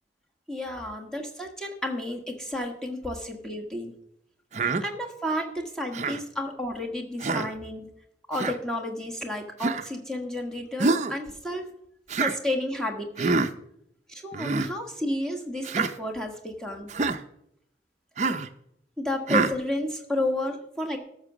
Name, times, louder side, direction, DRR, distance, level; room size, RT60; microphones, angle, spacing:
voice 1, 0.5-3.9 4.6-7.9 8.3-11.7 12.2-13.4 14.1-16.9 19.0-21.0, left 1 dB, 5° left, 1 dB, 1.4 m, -31 dB
Human voice, 4.5-4.8 5.9-6.2 7.2-7.5 8.3-8.6 9.6-9.9 10.8-11.1 12.1-12.4 13.2-13.5 14.3-14.7 15.6-15.9 16.9-17.2 18.2-18.5 19.3-19.6, right 3 dB, 40° right, 0.5 m, -25 dB
13.5 x 5.9 x 6.1 m, 0.77 s
head